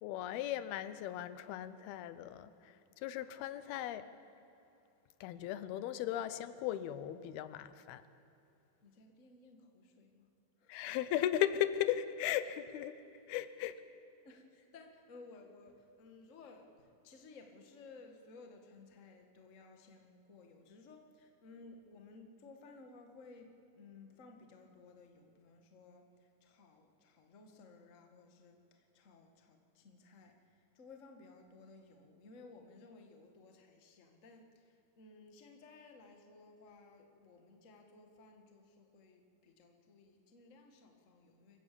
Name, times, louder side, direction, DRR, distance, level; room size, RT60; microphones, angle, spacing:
voice 1, 0.0-4.1 5.2-8.0 10.7-13.0 13.3-13.8, left 11 dB, 85° left, 13 dB, 2.7 m, -37 dB
voice 2, 8.8-10.3 10.6-10.9 14.2-41.6, left 3 dB, 40° left, 4 dB, 1.1 m, -58 dB
26.0 x 15.5 x 6.9 m, 2.8 s
omnidirectional pair, 4.3 m